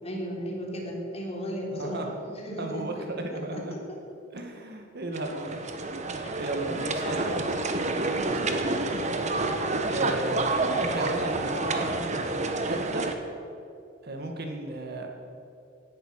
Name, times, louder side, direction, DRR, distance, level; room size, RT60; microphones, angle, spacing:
voice 1, 0.0-3.1 3.3-4.0 6.8-7.3 8.0-8.7, equal, 35° left, -2 dB, 3.5 m, -36 dB
voice 2, 1.7-2.2 2.6-3.7 4.3-7.5 8.0-8.8 9.9-13.0 14.0-15.1, right 2 dB, 55° right, 3 dB, 2.0 m, -35 dB
sound 1, 5.1-13.1, right 2 dB, 40° right, 1.2 m, -29 dB
17.5 x 11.0 x 6.5 m, 2.5 s
head